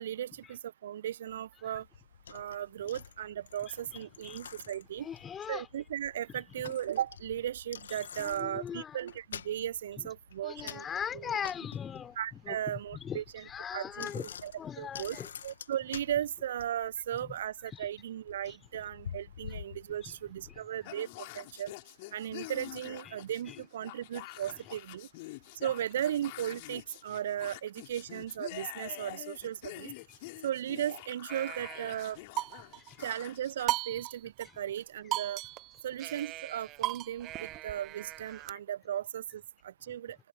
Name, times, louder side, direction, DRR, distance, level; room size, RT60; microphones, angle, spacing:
voice 1, 0.0-1.9 2.3-5.1 5.5-10.9 11.1-11.4 12.2-13.4 13.7-14.5 14.8-15.1 15.4-21.7 22.1-25.1 25.6-29.9 30.4-32.2 33.0-35.4 35.8-40.2, right 10 dB, 60° right, 1.3 m, -36 dB
Bicycle, 1.7-20.6, left 8 dB, 65° left, 2.0 m, -49 dB
voice 2, 5.0-5.7 6.3-6.7 8.2-9.0 10.0-10.1 10.4-15.3 17.2-17.4 17.7-17.9 18.5-18.6 20.0-20.2 20.5-20.6 23.1-23.2 23.5-23.6 24.3-24.6 29.8-30.2 32.9-33.0, left 8 dB, 25° left, 5.2 m, -41 dB
sound 1, 20.8-33.7, left 23 dB, 50° left, 4.6 m, -47 dB
sound 2, 31.3-32.9 33.7-34.5 34.8-34.9 35.1-38.5, right 16 dB, 35° right, 0.5 m, -37 dB
figure-of-eight pair, 90°, 0 cm